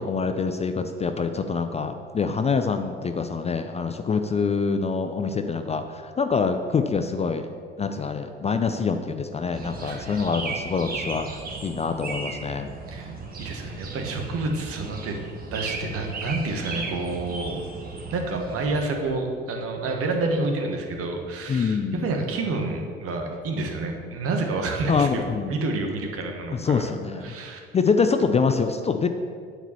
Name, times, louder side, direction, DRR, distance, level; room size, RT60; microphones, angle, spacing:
voice 1, 0.0-7.5 7.8-12.7 21.5-22.0 24.9-25.6 26.5-27.3 27.7-29.1, left 5 dB, 20° left, 7 dB, 0.5 m, -25 dB
voice 2, 9.4-10.2 12.9-13.1 13.4-15.2 15.5-17.5 18.1-25.2 25.5-26.9 27.2-27.6, right 3 dB, 50° right, 3 dB, 1.5 m, -29 dB
sound 1, 9.5-18.8, right 3 dB, 30° right, 1.5 m, -36 dB
8.9 x 4.8 x 7.0 m, 2.1 s
figure-of-eight pair, 55°, 30 cm